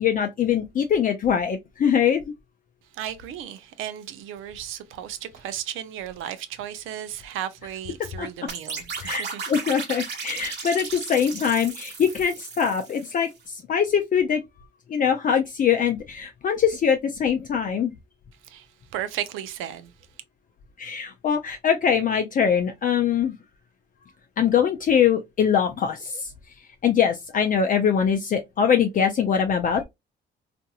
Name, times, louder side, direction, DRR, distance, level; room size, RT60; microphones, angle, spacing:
voice 1, 0.0-2.2 8.2-8.3 9.0-14.4 14.9-17.9 20.8-23.3 24.4-26.3 26.8-29.8, left 7 dB, 45° left, 0.4 m, -23 dB
voice 2, 2.9-9.6 18.4-18.7 18.9-19.9, right 11 dB, 90° right, 0.5 m, -35 dB
sound 1, 8.5-13.3, right 5 dB, 60° right, 1.0 m, -35 dB
2.8 x 2.5 x 2.2 m
cardioid pair, 90°, 20 cm